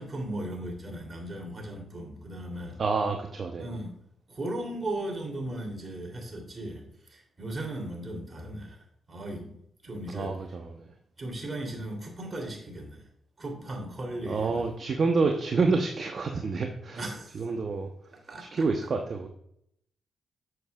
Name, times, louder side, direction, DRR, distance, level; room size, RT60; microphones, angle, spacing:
voice 1, 0.0-2.8 3.6-3.9 4.3-9.6 9.8-10.4 11.2-13.1 13.4-14.6 16.9-17.3 18.3-18.7, right 1 dB, 40° right, 1 dB, 2.9 m, -37 dB
voice 2, 2.8-3.6 10.1-10.9 14.3-17.0 17.3-17.9 18.4-19.3, right 4 dB, 55° right, 3 dB, 0.8 m, -28 dB
7.7 x 7.3 x 2.3 m, 0.72 s
hypercardioid pair, 45°, 0 cm